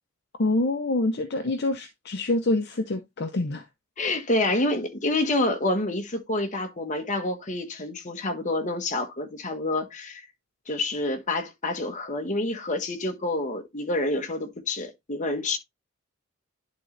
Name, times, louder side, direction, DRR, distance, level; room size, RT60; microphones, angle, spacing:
voice 1, 0.4-3.7, left 2 dB, 50° left, 0.7 m, -26 dB
voice 2, 4.0-10.3 10.7-15.6, left 2 dB, 35° left, 1.3 m, -28 dB
10.5 x 3.8 x 3.2 m
head